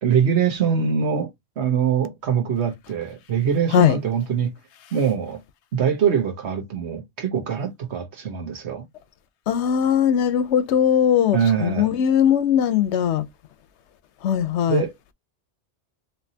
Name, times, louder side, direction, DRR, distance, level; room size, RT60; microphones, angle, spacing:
voice 1, 0.0-1.3 1.6-4.5 4.9-5.4 5.7-8.8 11.3-11.9 14.7-14.9, right 7 dB, 80° right, 1.3 m, -23 dB
voice 2, 9.5-13.3 14.2-14.8, left 9 dB, 90° left, 0.9 m, -19 dB
4.3 x 2.8 x 2.7 m
omnidirectional pair, 1.1 m